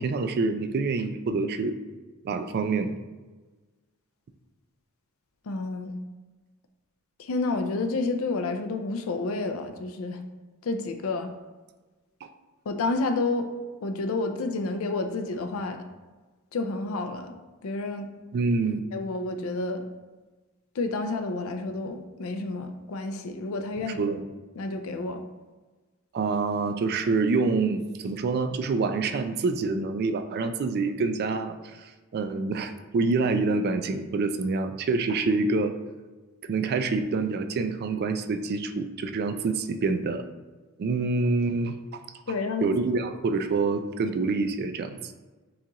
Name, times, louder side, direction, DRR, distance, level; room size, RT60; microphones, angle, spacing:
voice 1, 0.0-1.8 2.2-3.0 12.2-12.3 18.3-18.8 24.0-24.2 26.1-35.7 36.5-40.3 40.8-42.0 42.6-45.1, right 3 dB, 50° right, 9 dB, 0.3 m, -26 dB
voice 2, 5.5-6.0 7.2-10.2 10.6-11.3 12.7-13.5 13.8-15.8 16.5-17.3 17.6-18.1 18.9-19.9 20.7-24.2 24.6-25.2 42.3-42.7, left 3 dB, 75° left, 8 dB, 0.4 m, -30 dB
7.0 x 2.4 x 2.9 m, 1.3 s
head